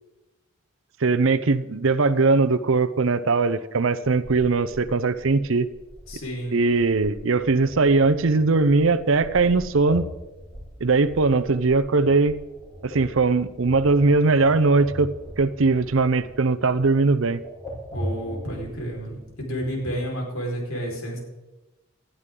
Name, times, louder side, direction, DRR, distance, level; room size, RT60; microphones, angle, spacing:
voice 1, 1.0-5.7 6.5-10.1 10.8-12.3 12.8-17.4, right 3 dB, 70° right, 13 dB, 0.7 m, -20 dB
sound 1, 4.8-19.4, equal, 15° left, 4.4 m, -40 dB
voice 2, 6.1-6.6 17.9-21.2, equal, 80° left, -1 dB, 4.7 m, -30 dB
19.5 x 12.5 x 3.8 m, 1.1 s
head